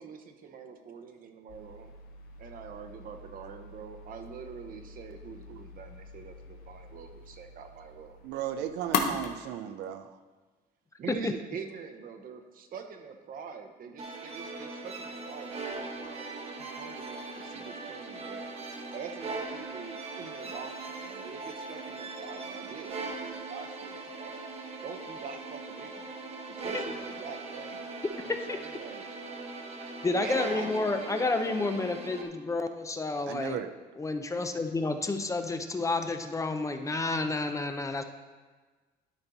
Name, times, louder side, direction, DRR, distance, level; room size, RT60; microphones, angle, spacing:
voice 1, 0.0-1.9 2.4-8.2 11.0-16.3 16.6-18.5 18.9-24.5 24.8-26.2 26.6-27.9 28.2-29.0 30.1-31.9, right 6 dB, 55° right, 6 dB, 0.9 m, -44 dB
sound 1, 1.5-9.3, left 5 dB, 65° left, 1.0 m, -39 dB
voice 2, 8.2-10.2 33.3-33.7, right 10 dB, 85° right, 9 dB, 0.5 m, -35 dB
sound 2, 14.0-32.2, right 3 dB, 40° right, 1.0 m, -40 dB
voice 3, 30.0-33.6 34.0-38.0, left 3 dB, 20° left, 7 dB, 0.6 m, -30 dB
12.5 x 4.4 x 4.0 m, 1.3 s
cardioid pair, 110°, 17 cm